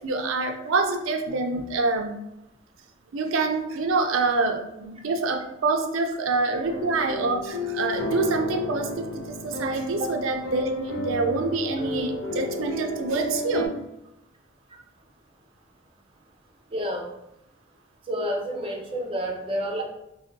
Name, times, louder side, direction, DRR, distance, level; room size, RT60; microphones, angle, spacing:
voice 1, 0.0-2.2 3.1-13.7, right 3 dB, 80° right, 5 dB, 0.4 m, -26 dB
sound 1, 6.6-13.7, left 1 dB, 75° left, 1.0 m, -32 dB
voice 2, 16.7-17.1 18.1-19.8, equal, 25° right, 0 dB, 0.5 m, -29 dB
3.4 x 2.2 x 2.6 m, 0.84 s
head